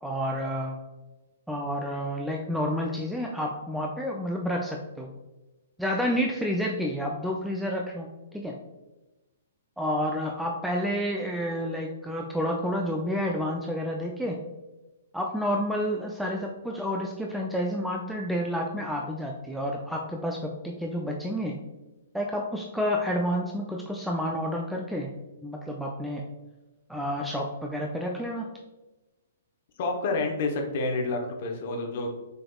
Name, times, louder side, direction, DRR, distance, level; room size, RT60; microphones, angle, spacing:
voice 1, 0.0-0.8 1.5-5.1 5.8-8.1 8.3-8.6 9.8-14.4 15.1-21.6 22.1-25.1 25.4-26.2 26.9-28.5, equal, ahead, 0 dB, 0.4 m, -30 dB
voice 2, 29.8-32.1, left 3 dB, 45° left, 2 dB, 0.9 m, -29 dB
6.6 x 3.4 x 2.3 m, 1.1 s
figure-of-eight pair, 115°, 0 cm